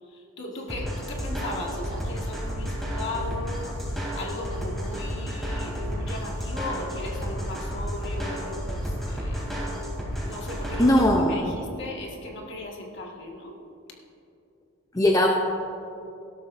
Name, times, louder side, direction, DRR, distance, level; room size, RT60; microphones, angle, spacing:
voice 1, 0.1-3.7 4.2-9.5 10.2-10.9 11.2-13.6, left 2 dB, 55° left, -1 dB, 1.8 m, -37 dB
sound 1, 0.7-11.1, equal, ahead, 2.9 m, -31 dB
voice 2, 10.8-11.5 14.9-15.3, left 1 dB, 15° left, 0 dB, 0.6 m, -19 dB
18.0 x 12.5 x 2.6 m, 2.7 s
head